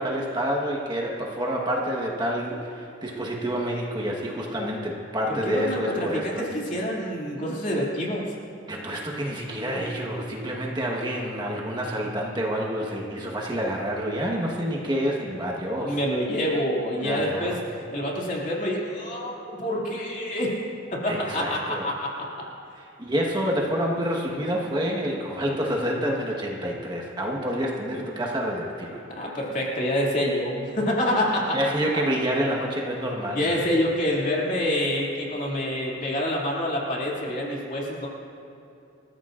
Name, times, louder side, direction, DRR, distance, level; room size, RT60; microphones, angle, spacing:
voice 1, 0.0-6.5 8.7-16.0 17.0-17.6 21.1-21.9 22.8-29.0 31.5-33.7, equal, 20° right, -2 dB, 1.3 m, -28 dB
voice 2, 5.3-8.2 15.8-17.6 17.9-20.5 20.9-22.3 29.1-31.6 33.3-38.1, equal, 40° left, -3 dB, 2.5 m, -27 dB
28.0 x 14.0 x 2.5 m, 2.7 s
head